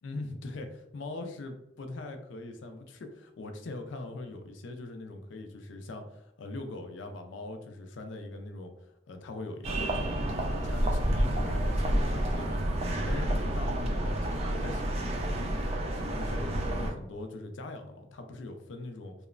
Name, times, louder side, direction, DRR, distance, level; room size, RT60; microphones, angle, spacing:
voice 1, 0.0-0.7 0.9-8.7 9.1-15.7 16.1-19.1, left 2 dB, 80° left, 6 dB, 0.4 m, -41 dB
sound 1, 9.6-16.9, right 1 dB, 35° right, 0.4 m, -29 dB
3.0 x 2.0 x 2.4 m, 0.85 s
head